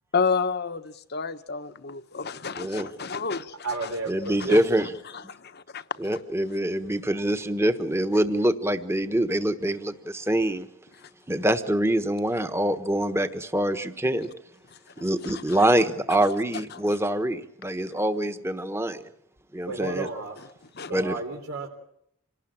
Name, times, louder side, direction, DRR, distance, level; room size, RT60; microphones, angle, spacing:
voice 1, 0.1-3.6 3.8-3.9 4.5-4.6 5.1-6.2 11.0-11.1 14.7-15.6 16.7-16.9 20.7-20.9, left 5 dB, 50° left, 1.1 m, -31 dB
voice 2, 2.6-2.9 4.1-4.9 6.0-10.7 11.3-14.3 15.0-19.0 19.5-20.1 20.9-21.1, right 1 dB, 10° right, 1.3 m, -25 dB
voice 3, 3.6-4.6 19.6-20.4 20.9-21.7, right 3 dB, 85° right, 3.5 m, -32 dB
27.0 x 19.0 x 8.7 m
head